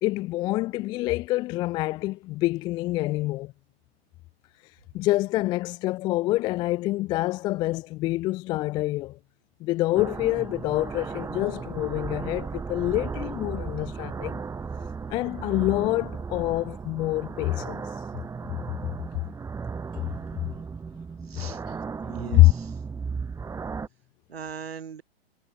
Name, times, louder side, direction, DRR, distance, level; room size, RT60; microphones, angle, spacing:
voice 1, 0.0-3.5 4.9-9.2 9.6-14.4 15.1-17.8 22.3-22.5, left 18 dB, 15° left, 0.4 m, -26 dB
sound 1, 10.0-23.9, right 5 dB, 10° right, 1.8 m, -35 dB
voice 2, 21.2-21.6 22.1-22.8 24.3-25.0, right 7 dB, 70° right, 6.0 m, -39 dB
figure-of-eight pair, 110°, 32 cm